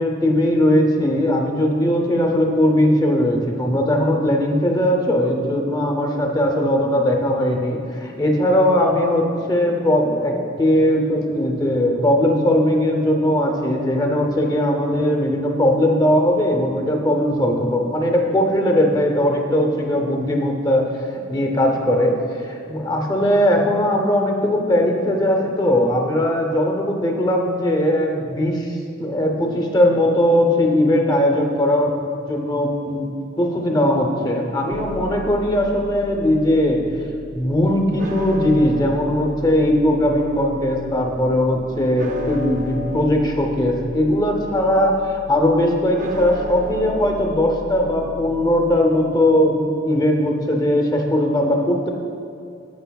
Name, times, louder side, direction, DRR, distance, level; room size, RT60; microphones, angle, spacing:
voice 1, 0.0-20.8 21.3-22.1 22.4-31.9 32.3-33.1 33.4-36.8 37.3-44.9 45.3-51.9, left 1 dB, 20° left, 2 dB, 0.6 m, -19 dB
sound 1, 34.7-48.7, left 1 dB, 40° right, 0.5 m, -34 dB
9.3 x 6.4 x 2.3 m, 2.4 s
head